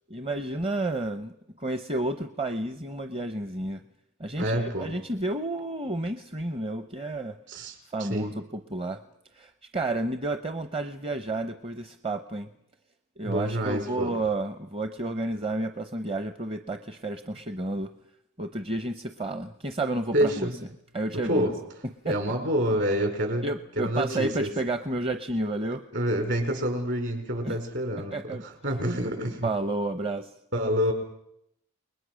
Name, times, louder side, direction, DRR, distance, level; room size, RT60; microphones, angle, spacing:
voice 1, 0.1-1.3 1.6-3.8 4.2-7.3 7.9-8.4 8.7-9.0 9.3-12.5 13.2-17.9 18.4-20.5 20.9-21.5 22.1-22.2 23.4-25.8 27.4-27.6 28.1-28.4 29.4-30.3, right 2 dB, 25° right, 8 dB, 0.9 m, -31 dB
voice 2, 4.4-4.9 7.5-7.7 8.0-8.3 13.2-14.1 20.1-20.5 21.3-21.6 22.1-23.5 23.8-24.5 25.9-28.1 28.4-29.5 30.5-30.9, equal, 55° right, 5 dB, 5.6 m, -27 dB
29.5 x 21.0 x 6.4 m, 0.77 s
head